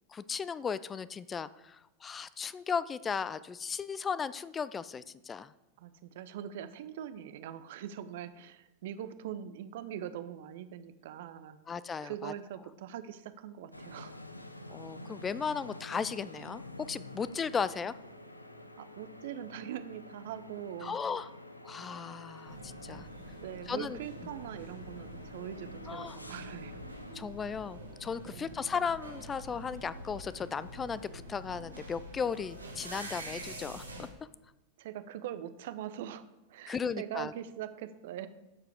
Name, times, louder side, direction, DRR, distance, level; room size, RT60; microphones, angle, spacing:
voice 1, 0.1-5.5 11.7-12.3 14.7-17.9 20.8-21.3 21.6-23.1 23.7-24.0 25.9-26.2 27.1-34.1 36.7-37.3, left 6 dB, 20° left, 17 dB, 0.4 m, -36 dB
voice 2, 5.8-11.6 12.0-14.2 18.8-21.0 23.4-26.8 28.2-28.6 34.8-38.3, right 10 dB, 55° right, 12 dB, 0.6 m, -42 dB
sound 1, 13.7-27.2, left 1 dB, 85° left, 0.6 m, -49 dB
sound 2, 22.4-34.1, right 1 dB, 80° right, 1.3 m, -46 dB
14.0 x 4.8 x 4.9 m, 0.96 s
figure-of-eight pair, 90°, 0 cm